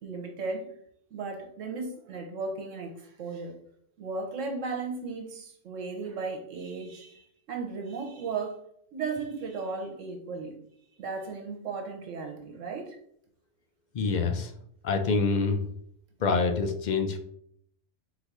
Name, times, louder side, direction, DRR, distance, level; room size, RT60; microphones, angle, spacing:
voice 1, 0.0-0.7 1.1-3.5 4.0-8.6 8.9-10.5 11.0-13.0, right 4 dB, 80° right, 3 dB, 1.3 m, -35 dB
voice 2, 13.9-14.5 14.8-15.6 16.2-17.2, left 4 dB, 55° left, 6 dB, 0.5 m, -26 dB
3.9 x 2.6 x 4.6 m, 0.69 s
omnidirectional pair, 1.3 m